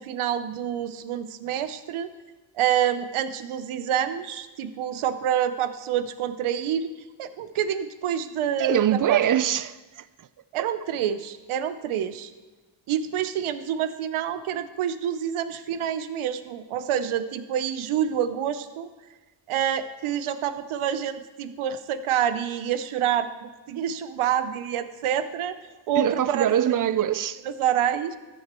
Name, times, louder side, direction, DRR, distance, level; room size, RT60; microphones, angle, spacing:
voice 1, 0.0-2.1 2.6-6.9 7.2-9.2 10.5-12.3 12.9-18.9 19.5-25.6 25.9-26.5 27.5-28.2, right 9 dB, 75° right, 0.8 m, -27 dB
voice 2, 8.6-10.0 10.6-10.7 26.0-27.4, right 10 dB, 40° right, 0.5 m, -23 dB
13.5 x 6.5 x 4.4 m
cardioid pair, 70°, 50 cm